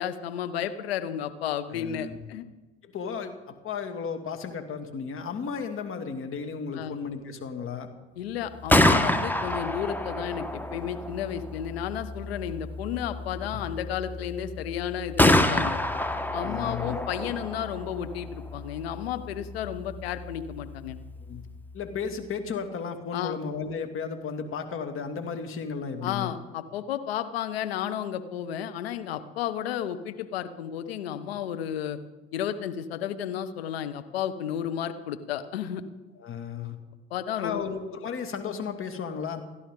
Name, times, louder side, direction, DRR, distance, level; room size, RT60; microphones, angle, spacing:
voice 1, 0.0-2.5 6.7-6.9 8.2-10.4 10.7-15.8 16.3-21.0 23.1-23.4 26.0-32.0 32.3-35.8 37.1-37.7, left 9 dB, 70° left, 9 dB, 1.3 m, -32 dB
voice 2, 1.7-2.2 2.8-7.9 13.3-13.6 16.4-17.0 21.3-21.4 21.7-26.3 36.2-36.8 37.4-39.4, left 6 dB, 40° left, 5 dB, 2.5 m, -34 dB
Gunshot gunfire, 8.5-22.3, left 1 dB, 5° left, 1.4 m, -29 dB
29.5 x 11.5 x 3.9 m, 1.2 s
figure-of-eight pair, 65°, 31 cm